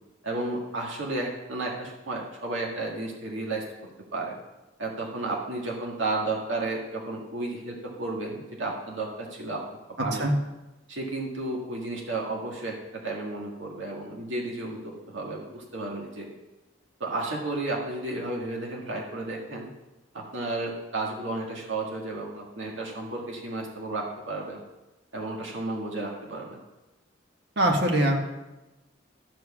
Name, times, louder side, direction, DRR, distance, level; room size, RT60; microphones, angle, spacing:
voice 1, 0.2-3.6 4.1-4.4 4.8-9.6 10.0-10.4 10.9-16.3 17.0-19.7 20.1-24.6 25.1-26.6, right 2 dB, 85° right, -2 dB, 1.8 m, -32 dB
voice 2, 27.6-28.2, right 1 dB, 60° right, 1 dB, 1.8 m, -22 dB
13.0 x 4.6 x 7.2 m, 1.0 s
head